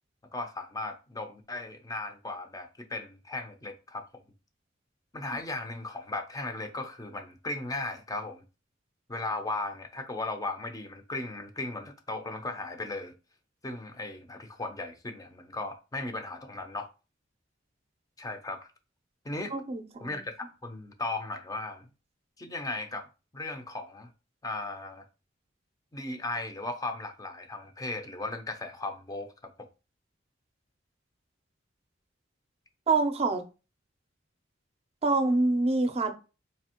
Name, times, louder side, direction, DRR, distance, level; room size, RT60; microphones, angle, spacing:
voice 1, 0.3-4.0 5.1-8.4 9.1-13.1 13.6-16.9 18.2-18.6 19.2-19.5 20.0-21.9 22.4-23.0 23.3-24.1 24.4-25.1 25.9-29.3 29.6-29.7, left 2 dB, 20° left, 0.5 m, -36 dB
voice 2, 19.5-20.1 32.9-33.4 35.0-36.1, right 3 dB, 35° right, 0.5 m, -26 dB
4.2 x 2.8 x 2.9 m
head